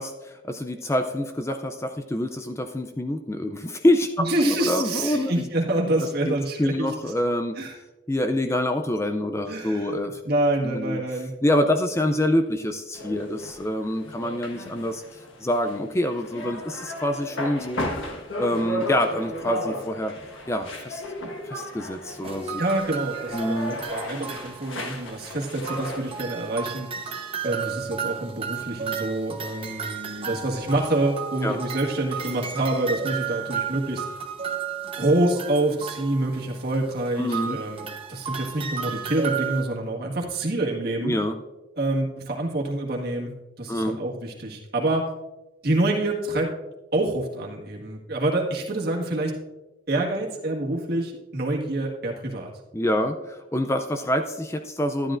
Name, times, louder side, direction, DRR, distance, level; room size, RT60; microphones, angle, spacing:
voice 1, 0.0-5.4 6.0-7.5 8.1-10.2 10.6-11.0 11.4-17.9 18.4-20.1 20.5-21.0 21.5-22.6 23.3-23.8 31.4-31.6 37.2-37.6 41.0-41.4 43.7-44.0 52.7-55.2, left 1 dB, 15° left, 6 dB, 0.4 m, -26 dB
voice 2, 4.2-6.9 7.6-7.8 9.5-9.9 10.2-11.3 22.6-26.9 27.4-34.0 35.0-41.1 41.8-43.3 43.6-45.1 45.6-46.5 46.9-49.4 49.9-52.5, right 2 dB, 50° right, -2 dB, 1.7 m, -26 dB
sound 1, 12.9-26.2, left 1 dB, 80° left, 1.4 m, -35 dB
sound 2, 22.2-25.3 25.7-39.6, right 7 dB, 30° right, 1.0 m, -33 dB
12.0 x 11.0 x 2.5 m, 1.1 s
head